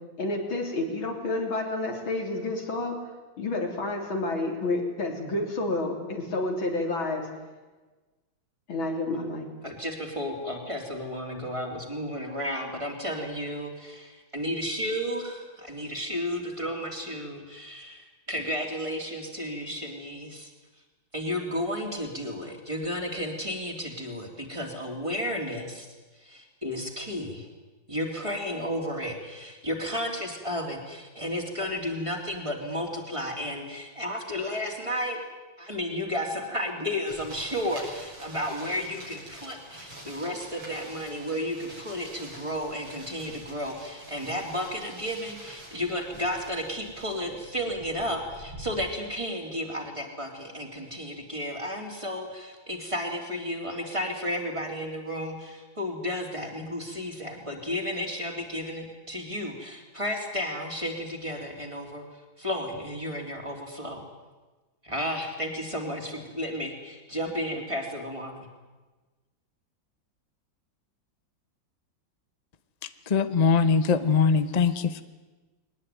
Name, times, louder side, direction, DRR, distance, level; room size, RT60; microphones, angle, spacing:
voice 1, 0.2-3.0 3.4-7.3 8.7-9.5, left 2 dB, 85° left, 2 dB, 4.3 m, -29 dB
voice 2, 9.6-20.5 21.1-27.5 27.9-35.2 35.6-64.0 64.8-68.5, equal, 15° right, 1 dB, 3.6 m, -33 dB
sound 1, 37.1-48.7, right 1 dB, 85° right, 7.3 m, -47 dB
voice 3, 73.1-75.0, left 5 dB, 45° left, 11 dB, 0.5 m, -22 dB
21.5 x 19.5 x 9.4 m, 1.2 s
omnidirectional pair, 2.1 m